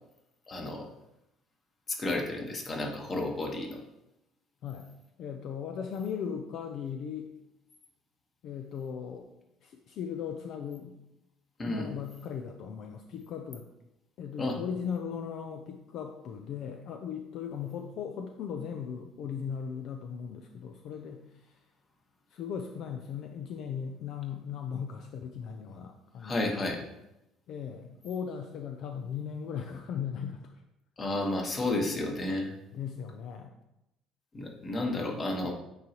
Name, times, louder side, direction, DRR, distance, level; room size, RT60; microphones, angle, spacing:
voice 1, 0.5-0.8 1.9-3.8 11.6-11.9 14.4-14.6 26.2-26.8 31.0-32.5 34.3-35.5, left 2 dB, 30° left, 1 dB, 1.4 m, -31 dB
voice 2, 5.2-7.3 8.4-9.3 9.6-10.9 11.7-13.7 14.2-21.6 22.3-26.9 27.5-30.5 32.7-33.5, left 7 dB, 65° left, 4 dB, 0.5 m, -38 dB
8.5 x 3.9 x 3.0 m, 0.87 s
cardioid pair, 105°, 0 cm